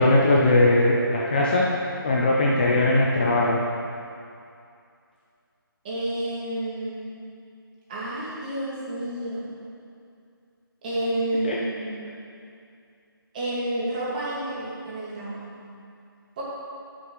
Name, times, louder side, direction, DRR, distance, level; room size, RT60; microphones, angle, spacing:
voice 1, 0.0-1.6 2.0-3.6 11.4-11.6, left 2 dB, 25° left, -4 dB, 0.7 m, -20 dB
voice 2, 5.8-7.2 7.9-9.5 10.8-12.1 13.3-15.7 16.4-16.5, right 1 dB, 20° right, -8 dB, 2.1 m, -30 dB
16.0 x 6.2 x 3.2 m, 2.4 s
figure-of-eight pair, 165°, 12 cm